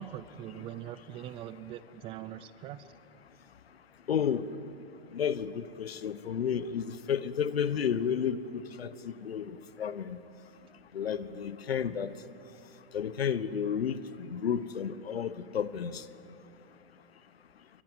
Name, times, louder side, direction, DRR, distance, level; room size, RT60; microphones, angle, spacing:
voice 1, 0.0-2.8, right 11 dB, 20° right, 0.5 m, -42 dB
voice 2, 0.7-1.3 4.1-4.5 5.1-10.2 10.9-12.2 12.9-16.1, left 8 dB, 80° left, 1.3 m, -32 dB
23.5 x 23.5 x 9.3 m
hypercardioid pair, 140°, 30 cm